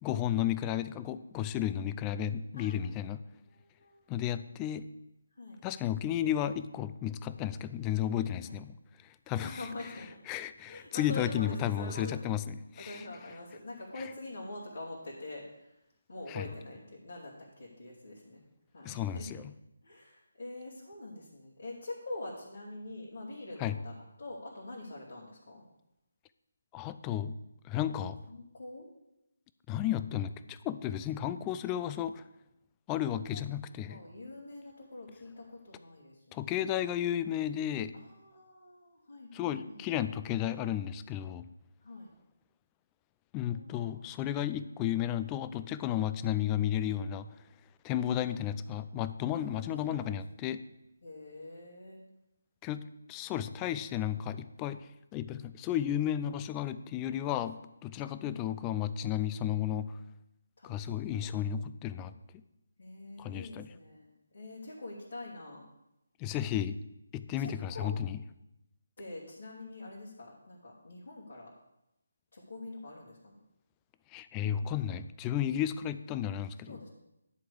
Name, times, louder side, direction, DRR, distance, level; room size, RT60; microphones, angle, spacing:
voice 1, 0.0-3.2 4.1-4.9 5.6-8.8 9.0-9.5 10.3-13.0 16.3-16.5 18.8-19.4 23.6-23.8 26.7-27.3 27.6-28.2 29.7-32.2 32.9-34.0 36.3-37.9 39.3-41.5 43.3-47.3 47.8-50.6 52.6-59.9 60.6-62.4 63.2-63.7 66.2-66.8 67.1-68.2 74.1-76.8, left 10 dB, 15° left, 13 dB, 0.4 m, -33 dB
voice 2, 3.5-4.3 5.3-5.6 8.4-8.6 9.4-10.2 10.7-12.2 12.8-15.8 16.1-18.4 18.7-19.3 19.8-25.6 28.3-28.9 33.1-36.5 37.9-39.9 41.8-42.1 43.5-43.9 47.9-48.7 49.3-50.2 51.0-52.0 60.6-61.0 62.8-65.7 67.4-67.9 69.0-71.5 72.3-73.4 74.4-74.9 76.7-76.9, left 2 dB, 60° left, -7 dB, 2.7 m, -45 dB
11.0 x 4.8 x 6.9 m, 0.88 s
figure-of-eight pair, 150°, 0 cm